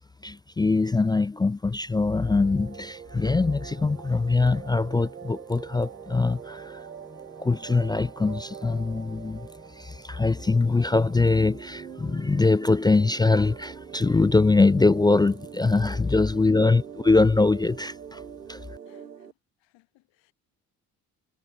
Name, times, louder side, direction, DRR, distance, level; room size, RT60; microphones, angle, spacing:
voice 1, 0.2-18.2 18.5-18.6, left 3 dB, 10° left, 0.4 m, -23 dB
sound 1, 2.2-19.3, right 8 dB, 85° right, 2.5 m, -43 dB
voice 2, 16.0-16.5 18.9-20.3, left 21 dB, 65° left, 6.9 m, -60 dB
figure-of-eight pair, 45°, 48 cm